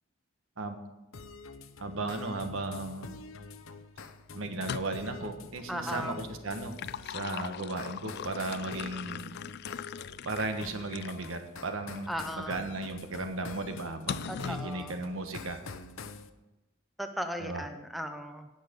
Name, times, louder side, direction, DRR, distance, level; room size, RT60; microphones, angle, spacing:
sound 1, 1.1-16.3, left 4 dB, 75° left, 0.8 m, -46 dB
voice 1, 1.8-3.1 4.3-6.8 7.1-9.5 10.2-12.1 12.4-15.6 17.4-17.7, right 2 dB, 70° right, 6 dB, 1.3 m, -36 dB
sound 2, 4.6-5.2 6.5-11.3 12.0-12.1 14.1-14.7, left 8 dB, 55° left, 0.3 m, -40 dB
voice 2, 5.7-6.2 12.1-12.7 14.3-15.0 17.0-18.5, equal, ahead, 7 dB, 0.7 m, -37 dB
17.5 x 6.7 x 5.3 m, 1.0 s
head